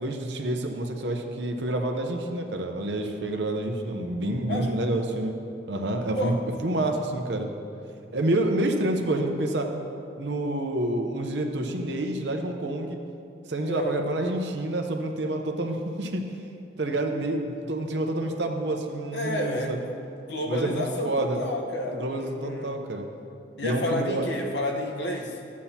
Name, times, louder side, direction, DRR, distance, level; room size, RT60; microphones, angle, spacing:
voice 1, 0.0-5.3 5.7-7.5 8.1-9.7 10.2-13.0 13.5-16.2 16.8-19.9 20.5-21.4 21.9-23.1 23.6-24.3, right 1 dB, 65° right, 4 dB, 0.8 m, -28 dB
voice 2, 4.5-4.8 6.1-6.4 13.7-14.1 19.1-19.9 20.3-22.7 23.6-25.6, left 1 dB, 65° left, 1 dB, 1.0 m, -31 dB
13.5 x 8.4 x 2.9 m, 2.5 s
head